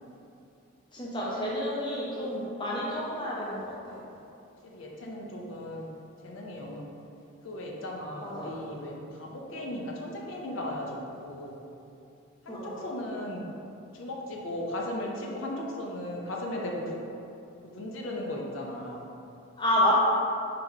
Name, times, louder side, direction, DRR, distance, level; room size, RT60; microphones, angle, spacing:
voice 1, 0.9-4.0 8.2-8.5 12.5-12.7 19.6-19.9, left 1 dB, 20° left, -6 dB, 0.6 m, -29 dB
voice 2, 3.9-4.2 4.6-5.9 6.2-6.8 7.4-11.6 12.5-13.4 13.9-17.0 17.6-19.0, left 1 dB, 70° left, -1 dB, 0.5 m, -36 dB
3.5 x 2.8 x 3.6 m, 2.7 s
head